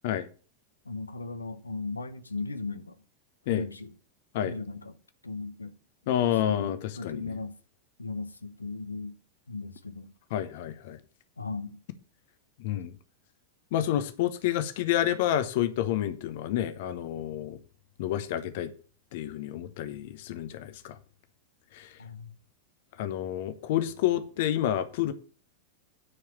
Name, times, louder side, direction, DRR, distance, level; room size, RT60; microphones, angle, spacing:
voice 1, 0.8-3.0 3.5-3.9 4.4-5.0 5.2-5.8 6.2-7.6 8.0-9.2 9.5-10.1 11.4-11.8 22.0-22.4, left 3 dB, 80° left, 0.8 m, -37 dB
voice 2, 6.1-7.3 10.3-11.0 12.6-12.9 13.7-17.6 18.0-18.7 19.1-21.0 21.7-22.0 23.0-25.1, left 11 dB, 50° left, 0.9 m, -29 dB
9.9 x 4.8 x 7.2 m
figure-of-eight pair, 90°, 0 cm